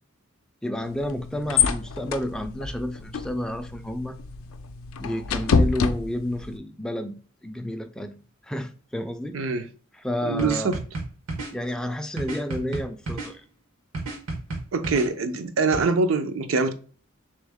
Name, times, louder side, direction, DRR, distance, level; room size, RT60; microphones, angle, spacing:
voice 1, 0.6-4.2 5.0-8.1 8.4-9.6 9.9-10.8 11.5-13.4, left 1 dB, 5° left, 0.3 m, -31 dB
sound 1, 0.8-6.6, left 5 dB, 75° left, 0.4 m, -27 dB
voice 2, 9.3-9.7 10.2-10.8 14.7-16.7, right 4 dB, 65° right, 0.5 m, -24 dB
sound 2, 10.4-11.5 12.2-13.3 13.9-15.1 15.7-15.8, right 2 dB, 90° right, 1.3 m, -31 dB
3.5 x 3.1 x 3.5 m
head